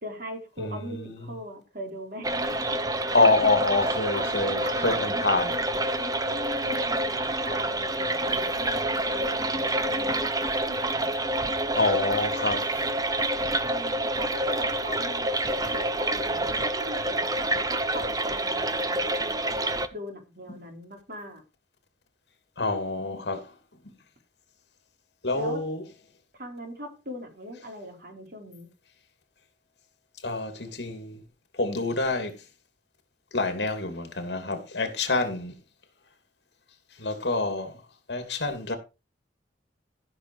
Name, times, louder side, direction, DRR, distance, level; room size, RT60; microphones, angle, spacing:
voice 1, 0.0-3.2 4.1-5.7 6.0-10.8 13.6-21.4 25.3-25.6 26.4-28.7, equal, 55° right, 4.1 m, -40 dB
voice 2, 0.6-1.1 3.1-5.5 11.8-12.8 15.6-15.7 22.6-23.5 25.2-25.8 30.2-31.2 31.5-32.3 33.3-35.5 37.0-37.8 38.1-38.7, left 3 dB, 65° left, 2.9 m, -27 dB
sound 1, 2.2-19.9, right 1 dB, 20° right, 0.9 m, -28 dB
14.5 x 6.6 x 4.9 m
head